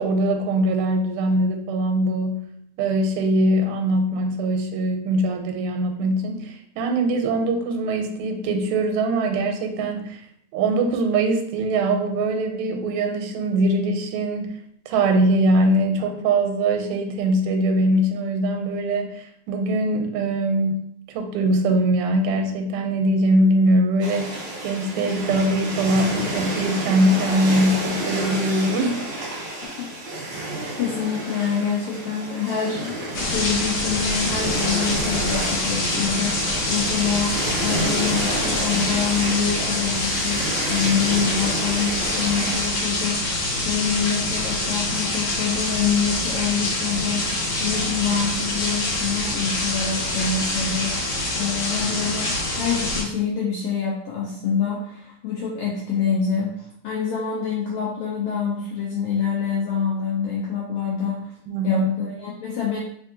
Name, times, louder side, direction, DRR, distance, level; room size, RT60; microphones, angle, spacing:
voice 1, 0.0-2.5 2.8-10.2 10.5-14.6 14.9-20.8 21.1-29.0 61.5-61.9, right 1 dB, 85° right, 4 dB, 1.9 m, -22 dB
sound 1, 24.0-42.7, right 2 dB, 65° right, 1.1 m, -30 dB
voice 2, 30.8-61.3 61.6-62.8, left 6 dB, 90° left, -4 dB, 1.3 m, -26 dB
sound 2, 33.1-53.0, left 2 dB, 55° left, 1.8 m, -25 dB
4.4 x 2.5 x 2.6 m, 0.70 s
omnidirectional pair, 3.3 m